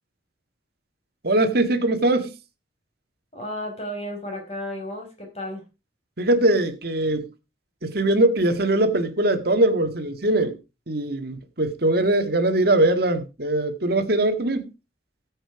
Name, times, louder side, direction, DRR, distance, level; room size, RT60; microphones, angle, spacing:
voice 1, 1.2-2.3 6.2-7.3 7.8-10.6 10.9-14.7, right 1 dB, 55° right, 1.9 m, -21 dB
voice 2, 3.3-5.6, left 1 dB, 35° left, 5.0 m, -33 dB
13.5 x 7.9 x 4.8 m
head